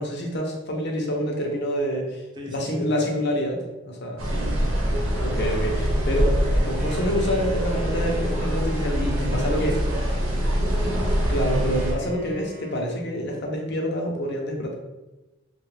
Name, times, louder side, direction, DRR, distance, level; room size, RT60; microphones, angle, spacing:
voice 1, 0.0-2.2 2.5-4.3 5.2-9.7 11.3-14.7, equal, 55° left, 0 dB, 0.7 m, -27 dB
voice 2, 2.3-2.9 4.2-4.9 9.3-11.0, right 1 dB, 20° right, 0 dB, 0.5 m, -38 dB
sound 1, 4.2-11.9, equal, 85° right, 0.7 m, -24 dB
Wind instrument woodwind instrument, 6.4-13.1, equal, 40° right, 0.9 m, -44 dB
3.2 x 2.4 x 3.2 m, 1.0 s
head